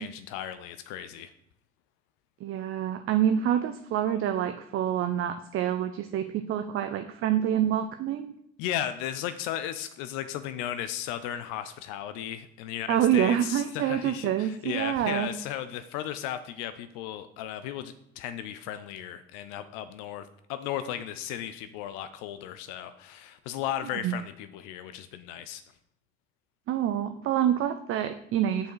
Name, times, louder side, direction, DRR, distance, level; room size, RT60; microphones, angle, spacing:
voice 1, 0.0-1.3 8.6-25.6, left 11 dB, 60° left, 11 dB, 0.5 m, -35 dB
voice 2, 2.4-8.3 12.9-15.3 24.0-24.2 26.7-28.7, right 10 dB, 40° right, 8 dB, 0.5 m, -27 dB
6.3 x 4.5 x 4.6 m, 0.78 s
figure-of-eight pair, 55°, 33 cm